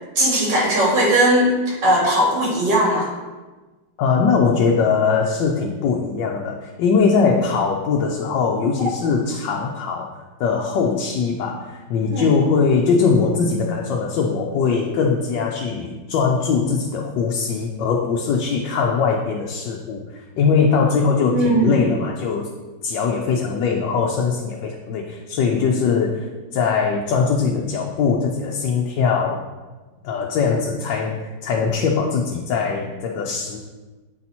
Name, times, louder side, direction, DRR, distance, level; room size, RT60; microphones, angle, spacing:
voice 1, 0.2-3.1 8.8-8.9 12.1-12.3 21.3-21.8, right 1 dB, 90° right, -5 dB, 2.4 m, -18 dB
voice 2, 4.0-10.1 10.4-22.5 22.8-29.4 30.0-31.2 31.4-33.6, left 5 dB, 90° left, 0 dB, 1.3 m, -21 dB
7.9 x 4.2 x 4.2 m, 1.2 s
omnidirectional pair, 1.9 m